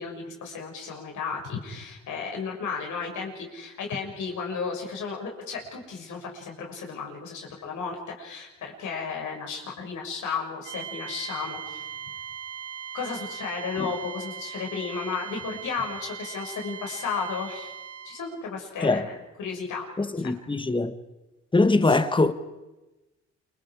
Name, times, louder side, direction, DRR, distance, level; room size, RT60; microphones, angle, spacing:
voice 1, 0.0-11.9 12.9-17.7 18.0-19.9 20.2-20.3, left 5 dB, 75° left, 6.8 m, -34 dB
sound 1, 10.6-18.4, right 8 dB, 80° right, 3.2 m, -39 dB
voice 2, 20.0-20.9 21.5-22.3, left 2 dB, 15° left, 1.6 m, -22 dB
28.5 x 25.0 x 5.1 m
cardioid pair, 90°, 30 cm